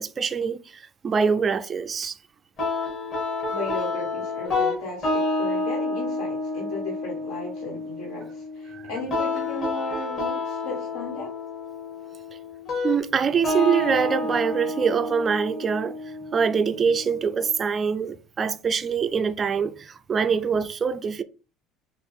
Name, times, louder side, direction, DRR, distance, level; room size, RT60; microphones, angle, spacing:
voice 1, 0.0-2.1 8.7-8.8 12.8-16.0 16.3-21.2, right 6 dB, 25° right, 0.3 m, -24 dB
sound 1, 2.6-17.5, left 2 dB, 35° left, 2.5 m, -29 dB
voice 2, 3.5-11.3, left 2 dB, 70° left, 1.7 m, -35 dB
5.8 x 2.4 x 3.6 m
cardioid pair, 150°, 0 cm